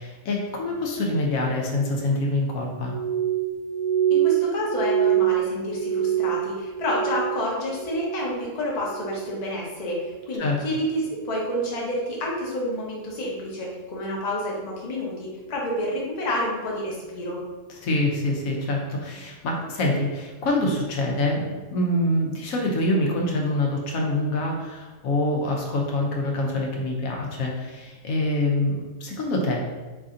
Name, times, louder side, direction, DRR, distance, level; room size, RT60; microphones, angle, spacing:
voice 1, 0.0-2.9 10.4-10.6 17.7-21.4 21.7-29.6, left 1 dB, 80° left, -1 dB, 1.1 m, -25 dB
Glass, 2.9-7.4 7.7-8.4 8.8-9.3 9.9-10.2, right 11 dB, 85° right, 1.1 m, -25 dB
voice 2, 4.1-17.4, left 1 dB, 35° left, -4 dB, 0.8 m, -29 dB
3.3 x 2.6 x 3.7 m, 1.3 s
omnidirectional pair, 1.4 m